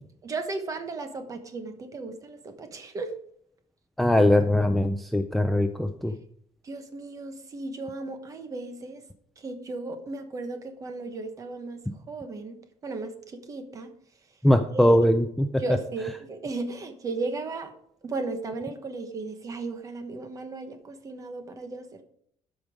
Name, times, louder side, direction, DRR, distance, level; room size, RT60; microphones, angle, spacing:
voice 1, 0.2-3.1 6.6-9.0 9.4-13.9 14.7-15.0 15.6-17.7 18.0-22.0, right 3 dB, 30° right, 7 dB, 1.1 m, -35 dB
voice 2, 4.0-6.2 14.4-15.6, left 1 dB, ahead, 7 dB, 0.4 m, -21 dB
13.0 x 5.3 x 4.9 m, 0.68 s
cardioid pair, 180°, 12 cm